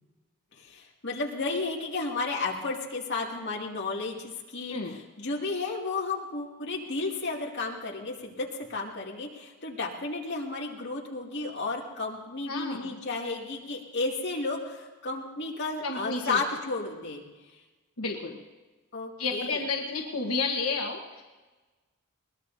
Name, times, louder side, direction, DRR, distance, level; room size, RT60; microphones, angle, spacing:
voice 1, 0.6-17.2 18.9-19.6, left 3 dB, 55° left, -2 dB, 2.4 m, -33 dB
voice 2, 12.5-13.0 15.8-16.4 18.0-18.4 19.2-21.2, left 4 dB, 85° left, 1 dB, 1.3 m, -31 dB
21.5 x 20.0 x 2.7 m, 1.2 s
head